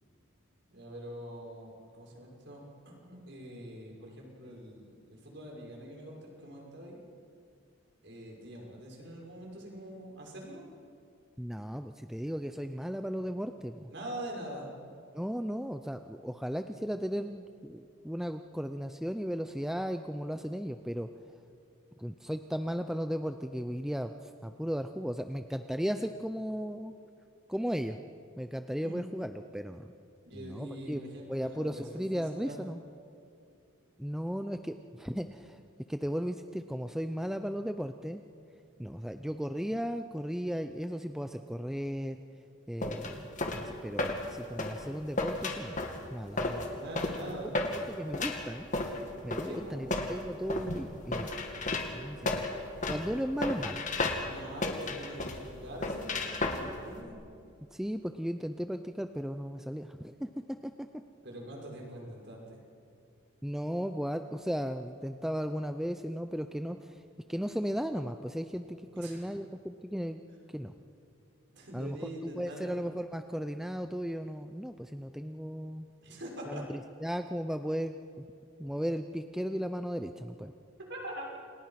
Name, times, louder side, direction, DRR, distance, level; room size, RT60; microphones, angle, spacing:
voice 1, 0.7-2.6 3.0-7.0 8.0-10.6 13.9-14.7 28.8-28.9 30.2-32.6 46.7-47.5 49.4-49.8 54.2-57.2 61.2-62.6 68.9-69.3 71.5-72.7 76.0-76.7 80.9-81.2, equal, 55° right, -1 dB, 6.4 m, -44 dB
voice 2, 11.4-13.9 15.1-21.4 22.0-27.0 27.5-28.0 28.4-29.9 30.3-31.0 31.3-32.8 34.0-35.6 35.9-38.2 38.8-42.2 42.7-45.8 46.1-46.7 47.9-48.7 49.2-51.3 51.9-52.4 52.9-53.8 57.7-60.9 63.4-67.0 67.3-70.2 70.5-70.7 71.7-72.0 72.3-75.9 76.4-77.9 78.6-80.5, equal, ahead, 7 dB, 0.6 m, -36 dB
sound 1, 42.8-57.0, left 2 dB, 35° left, 2.4 m, -34 dB
29.0 x 28.0 x 5.9 m, 2.4 s
head